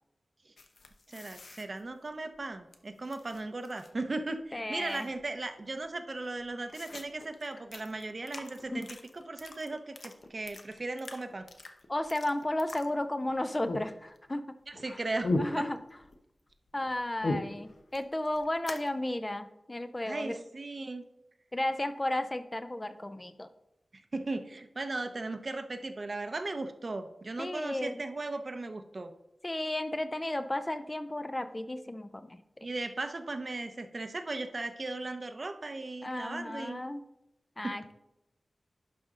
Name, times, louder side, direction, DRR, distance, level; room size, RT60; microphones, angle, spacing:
sound 1, 0.6-2.8 3.0-4.1 4.4-4.5 4.7-5.4 5.8-5.9 6.2-13.3 13.7-14.4 14.7-16.2 16.5-18.9, left 2 dB, 65° left, 0.9 m, -39 dB
voice 1, 1.1-8.9 9.1-11.5 14.7-15.3 15.6-15.7 20.1-21.0 24.1-29.1 32.6-36.8 37.6-37.8, right 2 dB, 45° right, 8 dB, 0.7 m, -37 dB
voice 2, 4.5-5.1 8.7-8.8 11.9-14.4 14.9-15.0 15.4-15.8 16.7-20.4 21.5-23.5 27.4-28.0 29.4-32.4 36.0-37.0 37.6-37.9, left 1 dB, 20° left, 10 dB, 0.5 m, -33 dB
11.0 x 5.2 x 3.7 m, 0.87 s
wide cardioid pair, 100°, 0 cm